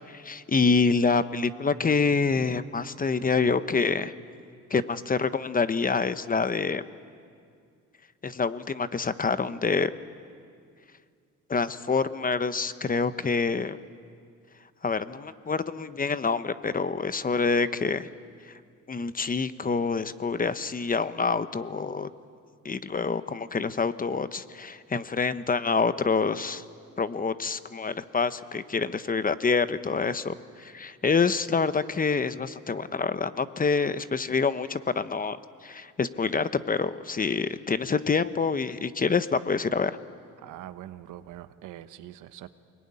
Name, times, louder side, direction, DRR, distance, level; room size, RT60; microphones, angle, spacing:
voice 1, 0.1-4.1 4.7-6.8 8.2-9.9 11.5-13.8 14.8-18.1 18.4-18.5 18.9-22.1 22.6-26.6 27.0-39.9, left 4 dB, 30° left, 13 dB, 1.0 m, -26 dB
voice 2, 40.4-42.5, right 13 dB, 90° right, 11 dB, 1.1 m, -43 dB
24.5 x 21.5 x 9.8 m, 2.3 s
cardioid pair, 90°, 30 cm